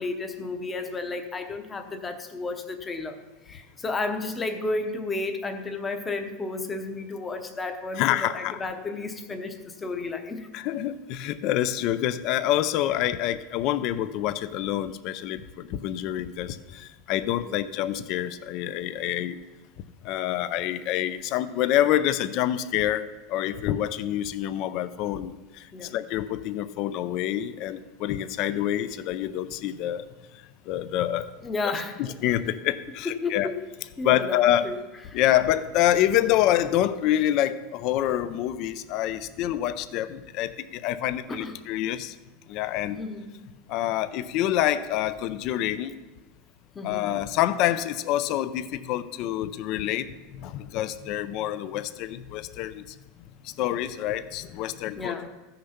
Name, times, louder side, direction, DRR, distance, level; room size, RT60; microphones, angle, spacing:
voice 1, 0.0-3.2 3.5-8.0 8.3-10.5 17.5-17.6 25.7-25.9 31.4-31.9 33.2-33.5 34.0-34.8 35.1-35.2 41.3-41.6 42.9-43.3 46.7-47.1 55.0-55.3, left 3 dB, 10° left, 7 dB, 0.8 m, -32 dB
voice 2, 7.9-8.6 10.5-19.4 20.0-30.0 30.7-31.3 31.6-31.7 32.0-33.5 34.0-34.7 35.1-42.1 42.5-43.0 43.7-46.0 46.8-52.8 53.4-55.3, left 12 dB, 35° left, 13 dB, 0.4 m, -27 dB
14.5 x 6.6 x 5.7 m, 1.1 s
supercardioid pair, 175°, 0 cm